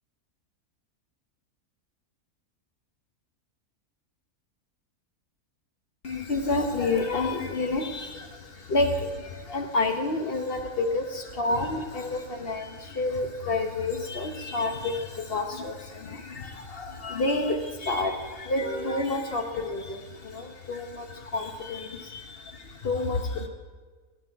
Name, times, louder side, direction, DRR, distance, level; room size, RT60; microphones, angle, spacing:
voice 1, 6.0-23.5, left 2 dB, 45° left, 4 dB, 1.2 m, -29 dB
16.5 x 8.5 x 4.6 m, 1.4 s
omnidirectional pair, 1.6 m